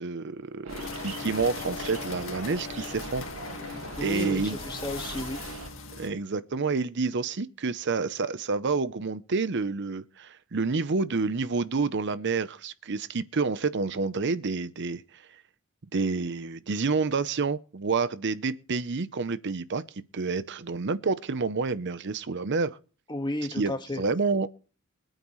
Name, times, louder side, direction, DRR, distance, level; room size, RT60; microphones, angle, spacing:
voice 1, 0.0-3.2 4.0-4.6 6.0-15.3 15.9-19.8 20.1-22.8 23.6-24.5, right 4 dB, 60° right, 0.7 m, -29 dB
sound 1, 0.6-5.7, right 3 dB, 80° right, 2.0 m, -41 dB
sound 2, 0.7-6.1, left 4 dB, 65° left, 1.9 m, -39 dB
voice 2, 4.0-5.4 23.1-24.0, left 1 dB, 20° left, 1.6 m, -32 dB
24.5 x 9.2 x 3.2 m
head